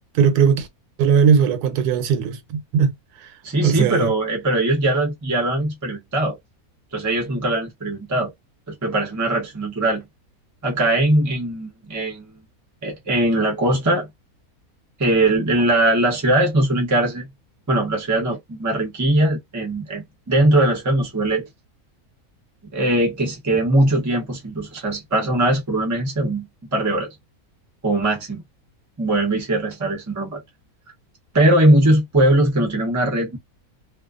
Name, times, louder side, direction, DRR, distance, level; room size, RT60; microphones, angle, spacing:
voice 1, 0.1-0.7 1.0-2.9 3.2-3.3 3.6-4.1, right 6 dB, 90° right, 1.1 m, -18 dB
voice 2, 3.4-6.4 6.9-8.3 8.7-10.0 10.6-12.3 12.8-14.1 15.0-17.3 17.7-21.5 22.7-27.1 27.8-28.4 29.0-30.4 31.3-33.4, right 1 dB, 20° right, 0.5 m, -20 dB
2.4 x 2.3 x 2.3 m
omnidirectional pair, 1.6 m